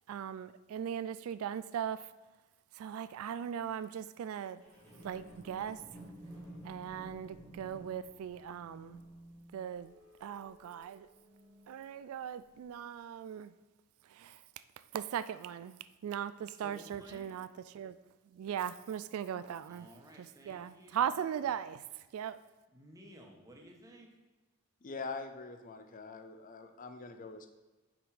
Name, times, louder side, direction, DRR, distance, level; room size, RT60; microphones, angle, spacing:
voice 1, 0.1-2.0 2.8-4.6 5.0-5.8 6.7-9.0 9.5-9.9 10.2-11.1 11.7-13.5 14.2-14.3 14.9-15.7 16.0-17.5 17.7-17.9 18.4-19.9 20.2-21.8 22.1-22.4, right 9 dB, 90° right, 14 dB, 0.3 m, -38 dB
sound 1, 4.6-12.0 12.6-12.7, right 1 dB, 15° left, 1.9 m, -53 dB
voice 2, 16.5-17.3 19.6-21.0 22.7-24.1, equal, 15° right, 0 dB, 1.1 m, -55 dB
voice 3, 24.8-27.5, left 4 dB, 40° left, 7 dB, 0.6 m, -44 dB
5.9 x 5.3 x 4.9 m, 1.2 s
head